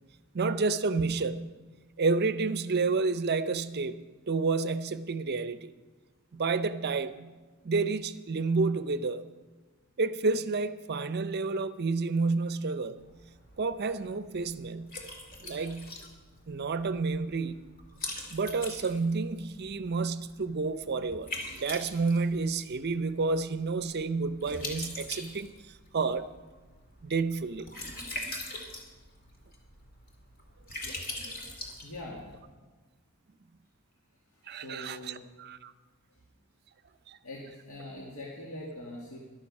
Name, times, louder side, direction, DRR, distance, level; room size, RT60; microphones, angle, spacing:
voice 1, 0.3-1.5 2.0-5.7 6.3-7.3 7.6-9.2 10.0-13.0 13.6-14.9 15.4-15.9 16.5-17.7 18.3-25.5 25.9-26.3 27.0-27.7 34.5-35.7 37.1-37.2, right 4 dB, 50° right, 13 dB, 0.6 m, -30 dB
Liquid, 13.0-32.4, left 2 dB, 45° left, 2.3 m, -43 dB
voice 2, 31.8-32.2 34.5-35.2 37.2-39.2, left 1 dB, 70° left, -4 dB, 2.0 m, -42 dB
13.5 x 11.5 x 5.3 m, 1.3 s
head